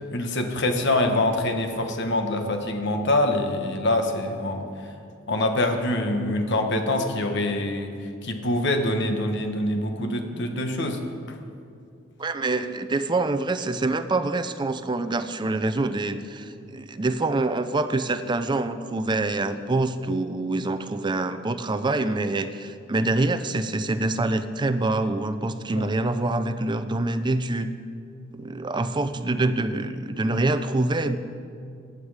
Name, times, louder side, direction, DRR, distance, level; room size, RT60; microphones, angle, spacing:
voice 1, 0.1-4.7 5.3-7.9 8.2-11.0 25.8-25.9, left 1 dB, 60° left, 5 dB, 1.2 m, -25 dB
voice 2, 12.2-27.7 28.3-31.2, right 2 dB, 20° right, 10 dB, 0.5 m, -25 dB
15.0 x 9.7 x 4.9 m, 2.4 s
head